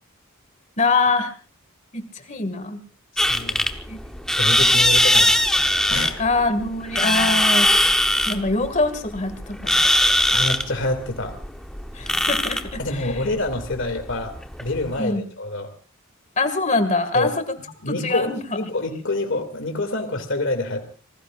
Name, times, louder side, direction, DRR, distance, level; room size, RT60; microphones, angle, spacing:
voice 1, 0.8-1.3 1.9-2.8 3.9-4.0 4.2-4.3 6.2-7.7 8.3-9.8 11.9-13.1 15.0-15.3 16.4-17.4 17.9-18.7, left 3 dB, 35° left, 10 dB, 2.0 m, -24 dB
sound 1, 3.2-15.0, left 1 dB, 5° left, 1.0 m, -21 dB
voice 2, 3.3-3.7 4.4-5.4 5.9-6.2 10.3-11.4 12.8-15.7 17.1-17.3 17.8-20.8, left 2 dB, 60° left, 6 dB, 2.6 m, -27 dB
27.5 x 20.0 x 2.5 m, 0.36 s
head